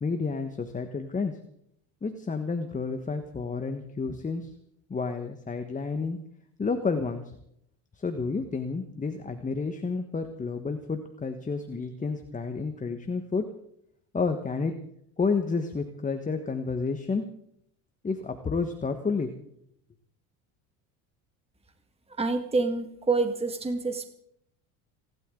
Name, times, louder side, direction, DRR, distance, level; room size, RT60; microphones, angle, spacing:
voice 1, 0.0-1.4 2.0-4.5 4.9-6.2 6.6-7.3 7.9-13.5 14.1-14.7 15.2-17.3 18.0-19.3, left 4 dB, 20° left, 7 dB, 1.4 m, -30 dB
voice 2, 22.2-24.1, right 3 dB, 15° right, 6 dB, 1.9 m, -27 dB
29.0 x 12.0 x 3.9 m, 0.73 s
supercardioid pair, 95°, 42 cm